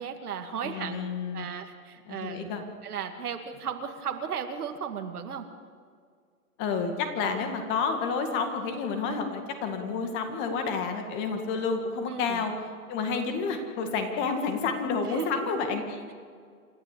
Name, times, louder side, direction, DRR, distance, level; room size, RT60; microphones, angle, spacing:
voice 1, 0.0-1.0 1.3-2.5 2.8-5.5 12.1-12.5 15.1-15.8, right 7 dB, 75° right, 5 dB, 2.4 m, -35 dB
voice 2, 0.6-1.5 2.1-2.6 6.6-12.5 12.9-16.1, left 5 dB, 25° left, 6 dB, 2.0 m, -30 dB
27.5 x 12.0 x 8.4 m, 2.1 s
hypercardioid pair, 150°, 45 cm